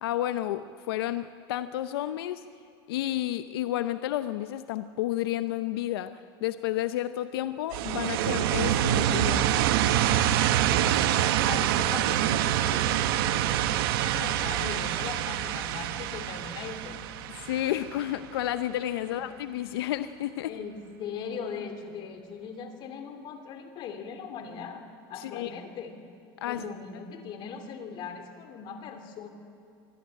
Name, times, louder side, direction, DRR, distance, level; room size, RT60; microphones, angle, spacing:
voice 1, 0.0-2.4 2.9-9.6 17.3-20.5 25.2-25.5 26.4-26.6, left 13 dB, 90° left, 11 dB, 0.7 m, -31 dB
sound 1, 7.7-18.4, right 11 dB, 75° right, 1.1 m, -26 dB
voice 2, 10.6-17.0 19.0-19.2 20.5-26.0 26.4-29.3, left 6 dB, 40° left, 6 dB, 2.8 m, -40 dB
25.0 x 13.5 x 9.8 m, 2.6 s
supercardioid pair, 145°, 12 cm